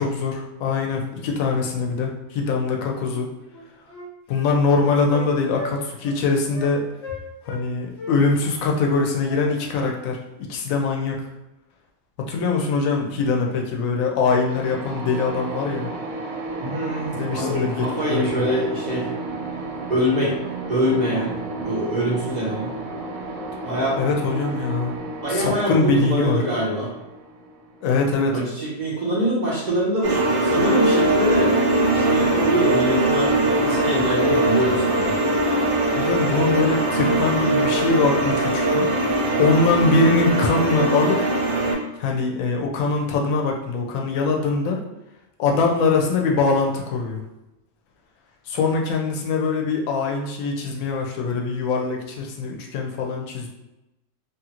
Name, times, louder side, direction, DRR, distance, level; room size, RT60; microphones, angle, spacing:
voice 1, 0.0-3.3 4.3-6.8 7.5-10.2 10.5-11.3 12.2-15.9 17.1-18.5 24.0-25.0 25.3-26.4 27.8-28.4 36.0-38.9 39.4-41.2 42.0-44.8 45.4-47.2 48.5-53.5, left 4 dB, 85° left, 1 dB, 1.0 m, -22 dB
Wind instrument woodwind instrument, 3.1-3.2 3.5-5.3 5.6-5.8 6.0-6.2 6.5-6.7 7.0-7.6 8.0-9.9, left 3 dB, 60° left, 0.9 m, -36 dB
sound 1, 14.5-28.2, right 2 dB, 85° right, 1.0 m, -33 dB
voice 2, 16.6-19.1 19.9-20.3 20.7-22.7 23.6-24.0 25.2-26.9 28.3-31.6 31.9-35.1, equal, 40° right, -6 dB, 0.7 m, -24 dB
sound 2, 30.0-41.7, right 1 dB, 60° right, 1.1 m, -21 dB
3.1 x 2.4 x 2.9 m, 0.96 s
omnidirectional pair, 1.4 m